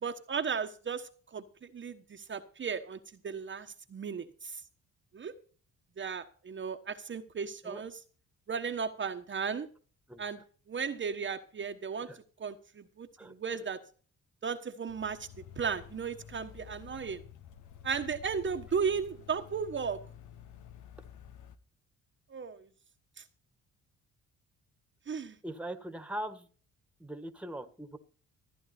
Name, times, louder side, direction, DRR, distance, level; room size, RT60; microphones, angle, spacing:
voice 1, 0.0-1.4 1.7-3.0 3.2-4.6 5.1-5.3 6.0-7.9 8.5-9.7 10.2-10.4 10.7-12.1 12.4-13.8 14.4-15.3 15.6-17.2 17.8-20.0 22.3-22.6 25.1-25.3, right 6 dB, 40° right, 5 dB, 1.2 m, -35 dB
sound 1, 14.9-21.6, left 9 dB, 80° left, 1.4 m, -51 dB
voice 2, 25.4-26.5 27.0-28.0, right 1 dB, 5° right, 9 dB, 1.6 m, -40 dB
14.5 x 9.8 x 4.3 m, 0.40 s
cardioid pair, 90°, 30 cm